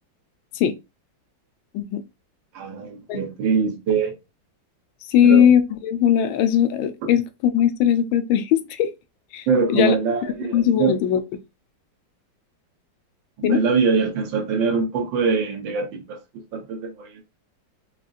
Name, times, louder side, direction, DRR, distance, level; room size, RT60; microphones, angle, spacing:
voice 1, 2.5-4.2 5.2-5.5 9.5-11.0 13.4-16.2 16.5-17.2, right 5 dB, 75° right, 1.6 m, -23 dB
voice 2, 5.1-8.9 9.3-10.0 10.5-11.2 13.4-13.6, left 9 dB, 90° left, 1.4 m, -19 dB
5.0 x 2.4 x 2.4 m
omnidirectional pair, 2.1 m